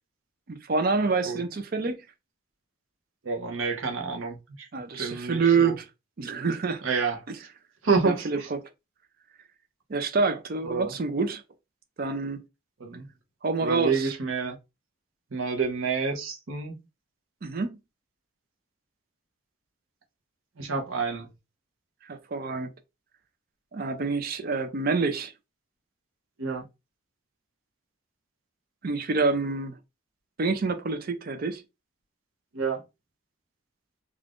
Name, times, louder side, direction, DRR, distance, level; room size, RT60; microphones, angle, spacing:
voice 1, 0.5-2.0 4.7-5.9 6.2-6.8 7.3-7.4 8.0-8.6 9.9-11.4 12.0-12.4 13.4-14.1 17.4-17.8 22.1-22.7 23.7-25.3 28.8-29.8 30.4-31.6, right 4 dB, 45° right, 0.4 m, -27 dB
voice 2, 3.2-4.7 5.0-5.7 6.8-7.2 7.8-8.5 10.7-10.9 12.8-13.1 13.6-14.6 15.3-16.8 20.6-21.3 26.4-26.6 32.5-32.8, right 4 dB, 70° right, 0.8 m, -28 dB
2.5 x 2.4 x 3.4 m
head